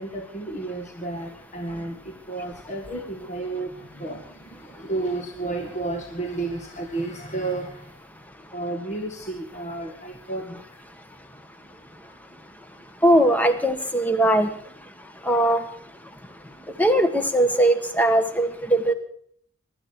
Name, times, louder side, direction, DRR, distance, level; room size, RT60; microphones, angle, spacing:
voice 1, 0.0-8.0 8.5-10.8 12.0-12.2, right 2 dB, 35° left, 2 dB, 1.9 m, -32 dB
voice 2, 13.0-14.5 15.2-15.6 16.8-18.9, right 1 dB, 10° left, 8 dB, 1.4 m, -20 dB
23.0 x 12.5 x 4.7 m, 0.62 s
head